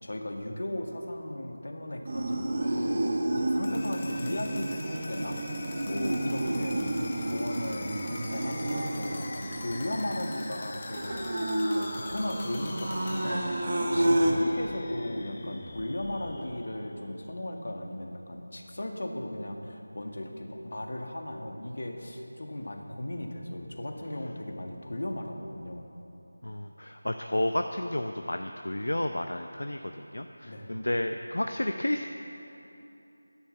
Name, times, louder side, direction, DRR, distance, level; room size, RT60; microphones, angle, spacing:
voice 1, 0.0-2.9 3.3-11.4 11.7-13.5 13.8-25.9 30.4-30.8, left 1 dB, 60° left, 3 dB, 1.7 m, -36 dB
sound 1, 2.0-14.3, right 1 dB, 45° right, 1.4 m, -30 dB
sound 2, 3.5-17.3, left 2 dB, 25° left, 1.0 m, -43 dB
voice 2, 26.4-29.8 30.1-32.1, left 1 dB, 75° left, 6 dB, 0.6 m, -31 dB
12.5 x 10.5 x 6.9 m, 2.9 s
figure-of-eight pair, 170°, 0 cm